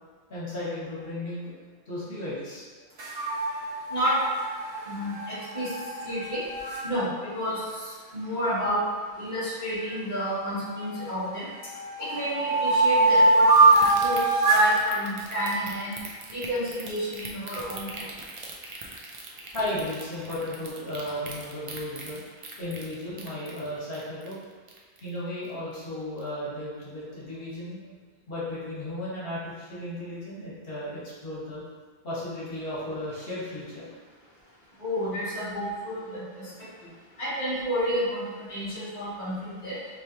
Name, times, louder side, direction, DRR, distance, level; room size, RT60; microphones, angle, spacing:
voice 1, 0.3-1.6 1.8-2.7 4.7-4.9 11.0-11.1 19.5-22.2 22.6-24.4 25.0-27.8 28.3-31.6 32.0-33.9, left 1 dB, 65° left, -9 dB, 1.5 m, -35 dB
sound 1, 3.0-6.8 9.8-11.0 11.5-14.7, right 2 dB, 65° right, 1.0 m, -23 dB
voice 2, 4.9-5.7 6.0-6.4 6.8-7.6 8.1-8.8 9.2-11.5 12.0-15.9 16.3-18.0 21.0-21.1 34.8-36.5 37.2-38.2 38.5-39.8, equal, 45° left, -11 dB, 1.2 m, -30 dB
sound 2, 13.6-25.2 25.4-25.8 26.2-26.3, right 3 dB, 40° right, 0.5 m, -41 dB
4.6 x 3.2 x 2.8 m, 1.5 s
omnidirectional pair, 1.0 m